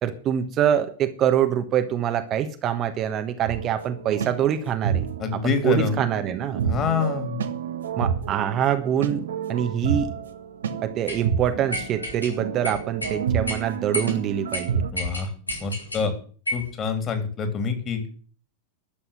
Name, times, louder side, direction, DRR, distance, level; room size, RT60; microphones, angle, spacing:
voice 1, 0.0-5.1 5.3-6.6 8.0-9.2 9.5-10.1 10.8-14.8, right 9 dB, 30° right, 8 dB, 1.3 m, -25 dB
sound 1, 3.5-14.9, right 7 dB, 65° right, 1.3 m, -30 dB
voice 2, 5.2-5.9 6.6-7.4 14.9-15.3 15.6-16.1 16.5-18.0, left 6 dB, 30° left, 7 dB, 3.6 m, -26 dB
sound 2, 11.1-11.2 11.7-12.3 12.6-13.2 13.5-13.6 13.9-14.2 14.5-14.6 15.0-16.0 16.5-16.7, left 1 dB, 80° left, 3.8 m, -30 dB
12.0 x 7.8 x 9.4 m, 0.42 s
figure-of-eight pair, 90°, 0 cm